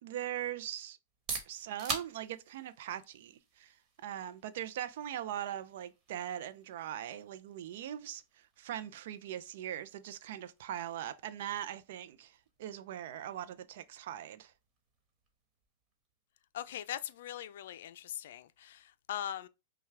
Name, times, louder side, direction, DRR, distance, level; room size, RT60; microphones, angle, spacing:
voice 1, 0.0-1.0 1.5-3.7 4.0-14.5, right 11 dB, 65° right, 0.5 m, -41 dB
sound 1, 1.0-16.6, right 4 dB, 30° right, 1.4 m, -48 dB
voice 2, 16.5-19.5, left 11 dB, 70° left, 0.4 m, -41 dB
5.5 x 2.3 x 3.3 m
hypercardioid pair, 130°, 0 cm